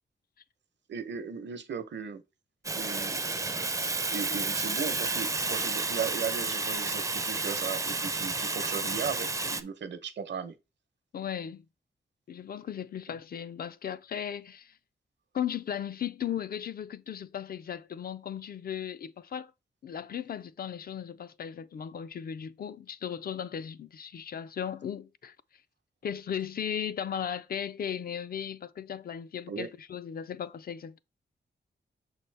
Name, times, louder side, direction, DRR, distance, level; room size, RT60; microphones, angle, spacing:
voice 1, 0.9-2.2 2.8-3.2 4.1-10.5 29.5-29.7, right 6 dB, 75° right, 0.8 m, -36 dB
Fire, 2.6-9.6, right 3 dB, 20° right, 0.4 m, -31 dB
voice 2, 11.1-11.6 12.3-14.7 15.3-19.5 19.8-25.3 26.0-31.0, left 9 dB, 55° left, 0.4 m, -36 dB
6.8 x 4.2 x 3.3 m
wide cardioid pair, 150°, 19 cm